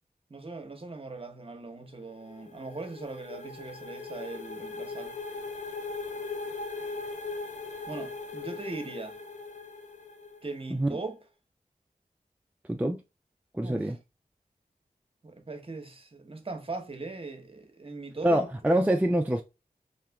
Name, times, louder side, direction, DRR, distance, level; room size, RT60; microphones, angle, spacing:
voice 1, 0.3-5.1 7.9-9.2 10.4-11.2 13.6-13.9 15.2-18.8, right 3 dB, 40° right, 0.8 m, -40 dB
sound 1, 2.0-10.7, left 3 dB, 60° left, 0.5 m, -39 dB
voice 2, 13.5-14.0 18.2-19.4, right 1 dB, 10° right, 0.3 m, -25 dB
2.8 x 2.4 x 3.3 m
wide cardioid pair, 55°, 14 cm